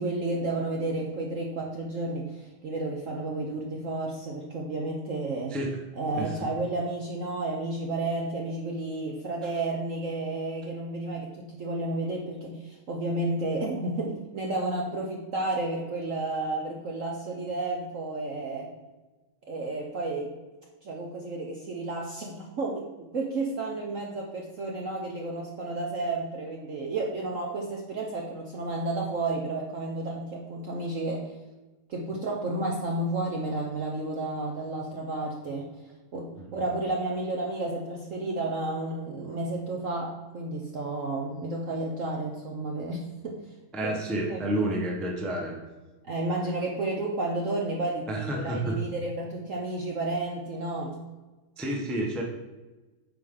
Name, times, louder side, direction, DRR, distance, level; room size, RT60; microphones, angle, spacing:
voice 1, 0.0-5.6 6.0-18.7 19.5-20.3 20.8-31.4 31.9-35.7 36.1-43.5 43.8-43.9 44.3-44.5 46.0-51.1, right 2 dB, 60° right, -1 dB, 0.9 m, -32 dB
voice 2, 43.7-45.6 48.1-48.7 51.6-52.2, right 1 dB, ahead, 0 dB, 0.5 m, -30 dB
8.5 x 4.9 x 3.8 m, 1.2 s
omnidirectional pair, 2.2 m